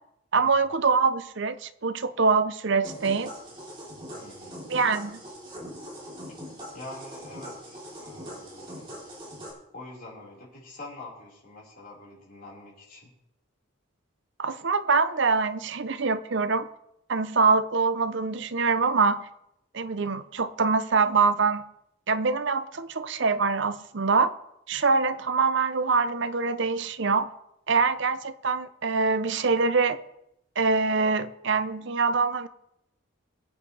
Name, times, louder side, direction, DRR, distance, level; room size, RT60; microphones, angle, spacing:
voice 1, 0.3-3.3 4.7-5.2 14.4-16.7 17.1-19.2 19.7-21.6 22.1-24.3 24.7-27.3 27.7-30.0 30.6-32.5, right 4 dB, 55° right, 0.7 m, -24 dB
sound 1, 2.8-9.5, equal, 25° right, 3.5 m, -42 dB
voice 2, 4.2-4.6 6.7-8.8 9.7-13.1, left 2 dB, 45° left, 4.7 m, -45 dB
22.5 x 8.5 x 3.3 m
head